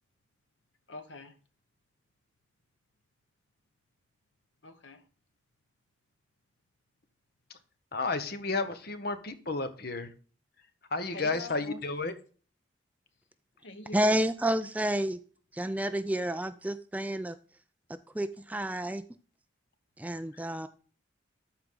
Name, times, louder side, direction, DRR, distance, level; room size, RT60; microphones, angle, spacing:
voice 1, 0.9-1.3 4.6-5.0 11.1-11.8 13.6-14.2, left 1 dB, 75° left, 8 dB, 1.3 m, -44 dB
voice 2, 7.9-10.1 10.9-12.1, left 3 dB, 55° left, 9 dB, 1.1 m, -32 dB
voice 3, 13.9-15.2 15.5-17.4 17.9-19.0 20.0-20.7, right 1 dB, 10° right, 11 dB, 0.4 m, -30 dB
13.0 x 4.7 x 3.8 m, 0.40 s
head